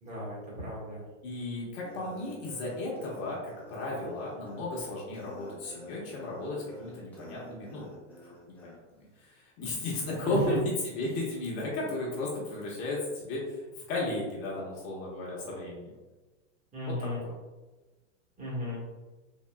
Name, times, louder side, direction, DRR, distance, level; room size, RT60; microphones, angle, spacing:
voice 1, 0.0-1.0 10.2-10.6 16.7-17.3 18.4-18.8, equal, 20° right, -6 dB, 1.4 m, -34 dB
voice 2, 1.2-7.9 8.2-8.3 8.6-8.8 9.2-10.6 10.8-13.6 13.9-15.9 16.9-17.3, left 2 dB, 40° left, -5 dB, 1.2 m, -34 dB
sound 1, 1.8-8.8, equal, 5° left, 0.8 m, -50 dB
3.9 x 2.8 x 2.2 m, 1.2 s
supercardioid pair, 130°, 38 cm